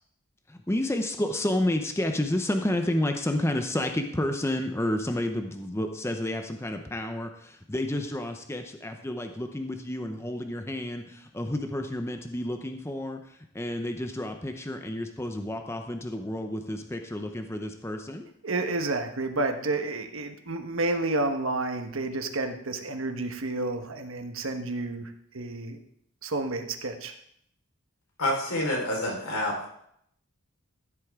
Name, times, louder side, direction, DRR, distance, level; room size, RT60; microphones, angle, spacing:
voice 1, 0.5-18.3, left 1 dB, 10° left, 5 dB, 0.7 m, -30 dB
voice 2, 18.4-25.8 26.2-27.1, right 2 dB, 65° right, 6 dB, 1.3 m, -30 dB
voice 3, 28.2-29.6, left 1 dB, 85° left, -1 dB, 4.3 m, -27 dB
14.5 x 8.3 x 3.6 m, 0.70 s
head